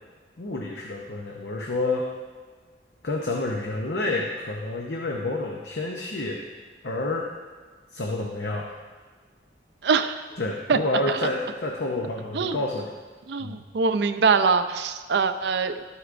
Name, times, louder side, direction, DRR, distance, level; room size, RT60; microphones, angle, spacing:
voice 1, 0.4-2.1 3.0-6.4 6.8-7.3 7.9-8.7 10.4-12.9 13.4-13.6, left 2 dB, 70° left, 0 dB, 0.8 m, -29 dB
voice 2, 9.8-10.2 10.7-10.8 12.3-12.6 13.3-15.8, right 5 dB, 70° right, 9 dB, 0.5 m, -23 dB
12.5 x 8.0 x 2.6 m, 1.4 s
head